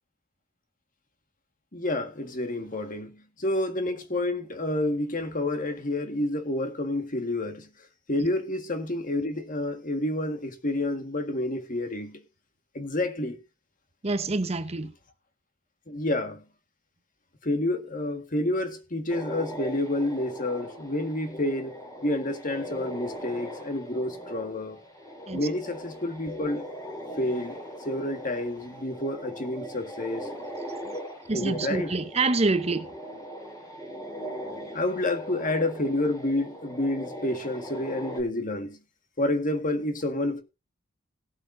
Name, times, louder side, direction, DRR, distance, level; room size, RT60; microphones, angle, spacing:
voice 1, 1.7-7.7 8.1-12.2 12.7-13.4 15.9-16.4 17.4-21.7 22.0-24.8 25.3-26.6 27.2-30.3 30.8-31.0 31.3-32.0 34.7-38.8 39.2-40.4, left 1 dB, 40° left, 1.7 m, -29 dB
voice 2, 14.0-14.9 25.3-25.4 31.3-32.9, right 3 dB, 30° right, 0.8 m, -26 dB
sound 1, 19.1-38.2, equal, 15° left, 3.8 m, -40 dB
18.0 x 8.4 x 2.7 m
head